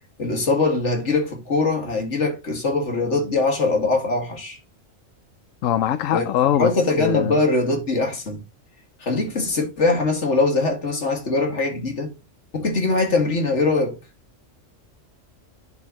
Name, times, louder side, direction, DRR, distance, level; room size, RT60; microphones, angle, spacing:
voice 1, 0.2-4.6 6.1-6.3 6.5-8.4 9.0-12.1 12.5-14.0, left 3 dB, 60° left, 2.4 m, -22 dB
voice 2, 5.6-6.7 7.0-7.4, left 11 dB, 80° left, 1.0 m, -21 dB
11.0 x 4.9 x 3.0 m
omnidirectional pair, 1.3 m